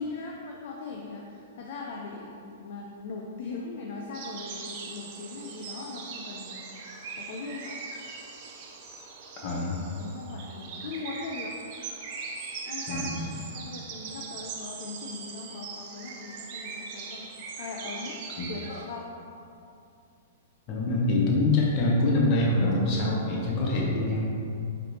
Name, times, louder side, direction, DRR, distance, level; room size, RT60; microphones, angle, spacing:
voice 1, 0.0-6.7 7.1-7.8 9.4-9.6 10.0-11.5 12.6-17.3 17.6-19.1, left 3 dB, 60° left, -1 dB, 0.4 m, -39 dB
sound 1, 4.1-18.8, right 4 dB, 45° right, 0.5 m, -40 dB
voice 2, 9.4-9.8 12.9-13.3 18.4-18.5 20.7-24.4, left 2 dB, 40° left, -3 dB, 0.8 m, -25 dB
4.1 x 3.2 x 2.7 m, 2.5 s
hypercardioid pair, 120°, 0 cm